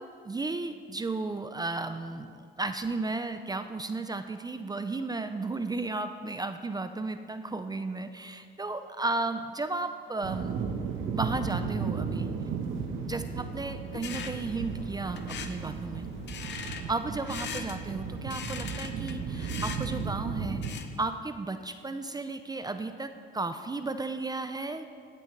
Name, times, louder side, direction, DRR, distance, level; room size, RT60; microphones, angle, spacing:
voice 1, 0.0-10.6 11.1-12.3 13.1-16.1 16.9-24.9, right 3 dB, 20° right, 9 dB, 0.5 m, -34 dB
sound 1, 10.2-20.7, right 6 dB, 85° right, 1.0 m, -35 dB
sound 2, 13.9-21.0, left 6 dB, 65° left, 0.8 m, -42 dB
16.0 x 8.5 x 3.2 m, 2.1 s
cardioid pair, 90°, 20 cm